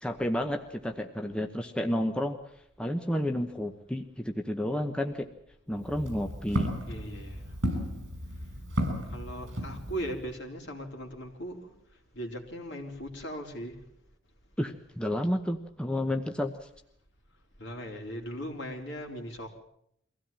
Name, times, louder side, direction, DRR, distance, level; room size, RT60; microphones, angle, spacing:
voice 1, 0.0-2.4 2.8-5.3 5.7-6.7 14.6-16.5, left 1 dB, 5° left, 4 dB, 0.9 m, -31 dB
Walk footsteps, 5.7-10.3, equal, 60° right, 6.3 m, -34 dB
voice 2, 6.9-7.5 9.1-11.7 12.1-13.8 17.6-19.6, equal, 60° left, 1 dB, 4.1 m, -39 dB
23.5 x 16.0 x 8.8 m, 0.73 s
head